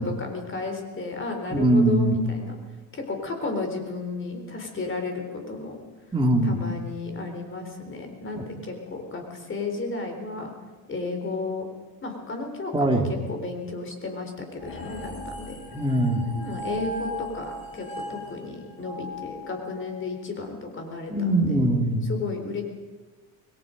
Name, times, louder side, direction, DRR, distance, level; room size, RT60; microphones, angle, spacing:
voice 1, 0.0-2.6 2.9-5.8 6.4-10.5 10.9-11.6 12.0-13.0 13.3-15.6 16.3-21.6 22.1-22.6, left 3 dB, 30° left, 4 dB, 4.2 m, -33 dB
voice 2, 1.5-2.2 6.1-6.6 8.3-8.4 12.7-13.1 15.7-16.2 21.1-22.1, right 1 dB, 10° right, 1 dB, 2.8 m, -21 dB
sound 1, 14.6-20.0, left 1 dB, 50° left, 6.8 m, -37 dB
27.0 x 21.0 x 5.3 m, 1.3 s
cardioid pair, 135°, 43 cm